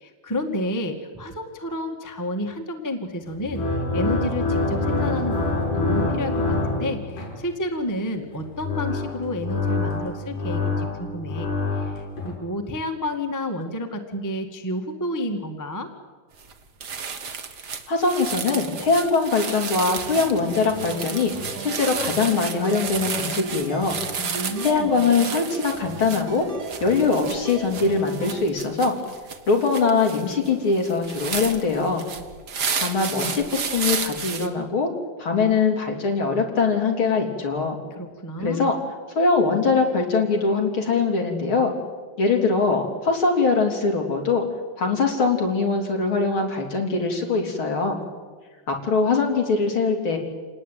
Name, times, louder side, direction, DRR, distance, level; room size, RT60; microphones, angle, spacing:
voice 1, 0.0-3.6 3.9-15.9 24.2-24.9 37.9-38.6, left 1 dB, 10° left, 4 dB, 0.9 m, -30 dB
sound 1, 3.3-7.4 8.3-12.3, left 3 dB, 60° left, 7.9 m, -26 dB
sound 2, 16.4-16.5 16.8-34.5, right 6 dB, 50° right, 1.3 m, -32 dB
voice 2, 17.9-21.3 21.6-24.0 24.6-26.5 26.8-28.9 29.5-32.0 32.8-34.9 35.2-37.8 38.4-38.7 39.2-41.7 42.2-44.4 44.8-48.0 48.7-50.2, left 4 dB, 35° left, 2 dB, 4.1 m, -22 dB
sound 3, 19.9-28.4, right 2 dB, 65° right, 4.2 m, -37 dB
27.5 x 19.5 x 9.3 m, 1.5 s
omnidirectional pair, 4.0 m